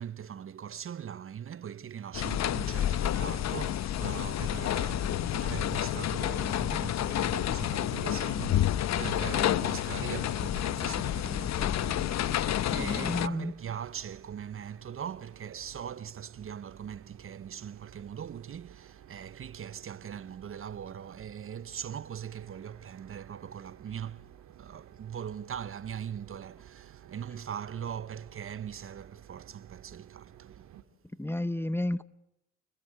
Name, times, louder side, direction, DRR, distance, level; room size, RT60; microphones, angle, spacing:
voice 1, 0.0-30.7, right 8 dB, 45° right, 0.9 m, -41 dB
sound 1, 2.1-13.3, left 11 dB, 60° left, 0.9 m, -29 dB
voice 2, 12.7-13.5 31.2-32.0, left 1 dB, 10° left, 1.0 m, -31 dB
sound 2, 12.7-30.8, right 11 dB, 75° right, 2.3 m, -54 dB
30.0 x 21.5 x 9.0 m
cardioid pair, 90°, 30 cm